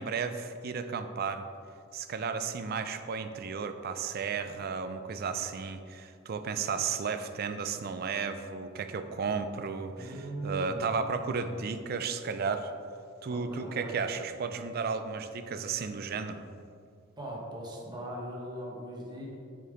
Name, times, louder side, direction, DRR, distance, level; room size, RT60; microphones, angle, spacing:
voice 1, 0.0-1.5 1.9-12.7 13.2-16.4, right 5 dB, 50° right, 9 dB, 0.4 m, -33 dB
voice 2, 10.0-11.0 13.3-14.0 17.2-19.4, right 1 dB, 20° right, -3 dB, 1.2 m, -40 dB
6.7 x 5.2 x 3.7 m, 2.4 s
head